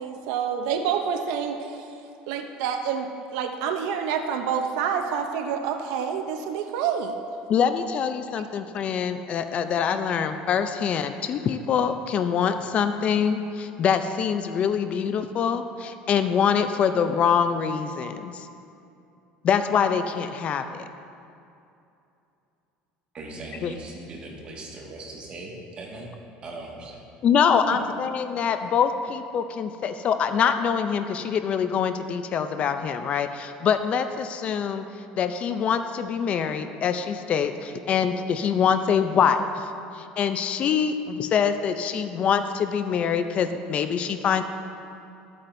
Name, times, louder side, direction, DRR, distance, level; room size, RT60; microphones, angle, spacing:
voice 1, 0.0-1.9 2.3-7.2, right 7 dB, 80° right, 5 dB, 0.7 m, -28 dB
voice 2, 7.5-18.5 19.4-20.9 23.6-23.7 27.2-34.9 35.1-39.5 40.0-44.4, left 7 dB, 40° left, 9 dB, 0.4 m, -24 dB
voice 3, 23.1-26.1 26.4-27.0 27.7-28.0, right 2 dB, 35° right, -2 dB, 1.8 m, -39 dB
13.5 x 8.4 x 2.6 m, 2.7 s
cardioid pair, 130°, 3 cm